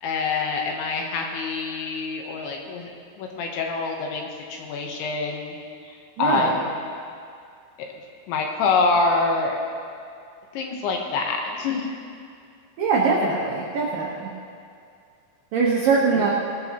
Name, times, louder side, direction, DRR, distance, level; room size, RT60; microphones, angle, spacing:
voice 1, 0.0-2.9 3.2-5.5 6.2-6.7 7.8-7.9 8.3-9.6 10.5-11.9 16.1-16.3, left 4 dB, 75° left, 1 dB, 3.1 m, -25 dB
voice 2, 6.2-6.6 12.8-14.3 15.5-16.3, right 4 dB, 80° right, -4 dB, 2.0 m, -22 dB
20.0 x 12.5 x 3.0 m, 2.3 s
omnidirectional pair, 5.8 m